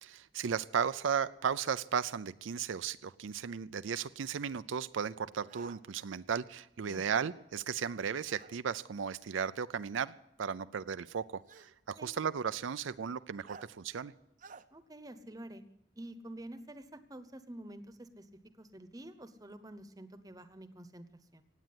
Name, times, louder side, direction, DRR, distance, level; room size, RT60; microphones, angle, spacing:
voice 1, 0.0-10.1 10.4-14.1, right 7 dB, 90° right, 13 dB, 0.5 m, -35 dB
sound 1, 5.5-5.8 8.3-8.5 9.8-9.9 11.5-11.7 13.5-13.7 14.4-14.6, right 5 dB, 40° right, 0.6 m, -52 dB
voice 2, 6.8-7.2 12.0-12.1 14.7-15.6 16.0-18.3 18.6-21.1 21.3-21.4, right 1 dB, 20° right, 11 dB, 0.9 m, -48 dB
16.5 x 9.2 x 9.4 m, 0.85 s
head